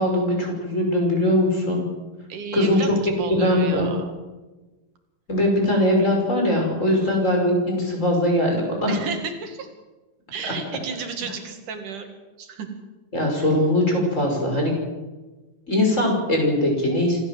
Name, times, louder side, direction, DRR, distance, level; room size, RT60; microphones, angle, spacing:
voice 1, 0.0-1.8 2.5-2.8 3.4-3.9 5.3-9.0 13.1-14.7 15.7-17.2, left 1 dB, 20° left, 1 dB, 6.1 m, -21 dB
voice 2, 2.3-4.1 7.0-7.2 8.9-9.7 10.3-12.1 12.4-12.7, right 5 dB, 80° right, 6 dB, 3.6 m, -33 dB
26.5 x 14.0 x 7.6 m, 1.2 s
omnidirectional pair, 3.6 m